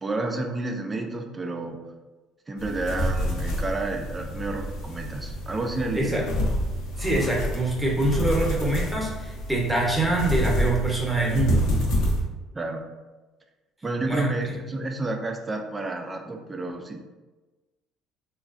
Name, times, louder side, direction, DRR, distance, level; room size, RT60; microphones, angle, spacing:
voice 1, 0.0-1.8 2.5-6.3 12.5-12.8 13.8-17.0, right 2 dB, 25° right, 4 dB, 0.4 m, -30 dB
sound 1, 2.6-12.2, equal, 75° left, 0.7 m, -28 dB
voice 2, 7.0-11.7 14.1-14.3, right 2 dB, 5° right, -2 dB, 0.8 m, -25 dB
3.1 x 2.2 x 2.5 m, 1.2 s
supercardioid pair, 90°, 0 cm